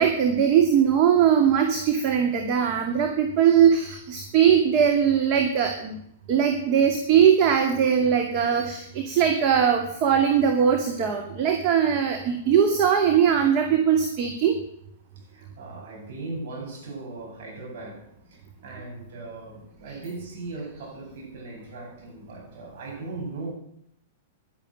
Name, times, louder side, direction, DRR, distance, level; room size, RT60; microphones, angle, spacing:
voice 1, 0.0-6.0 6.3-14.6, right 8 dB, 45° right, 2.3 m, -20 dB
voice 2, 15.3-23.5, right 3 dB, 65° right, 7.9 m, -38 dB
11.5 x 11.0 x 9.2 m
hypercardioid pair, 115°, 0 cm